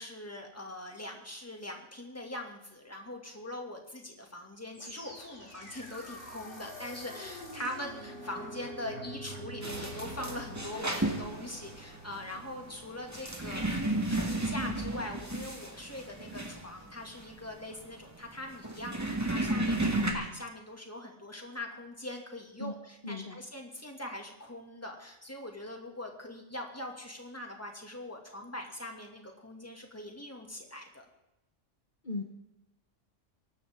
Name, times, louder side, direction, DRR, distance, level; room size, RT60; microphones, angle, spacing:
voice 1, 0.0-13.7 14.1-31.1, left 1 dB, 10° left, 2 dB, 2.3 m, -42 dB
sound 1, 4.7-13.9, right 1 dB, 65° left, 5.3 m, -46 dB
sound 2, 9.6-20.1, right 1 dB, 15° right, 1.8 m, -33 dB
voice 2, 22.6-23.4 32.0-32.2, left 3 dB, 40° left, 2 dB, 1.4 m, -38 dB
23.5 x 12.0 x 3.7 m, 0.88 s
omnidirectional pair, 1.3 m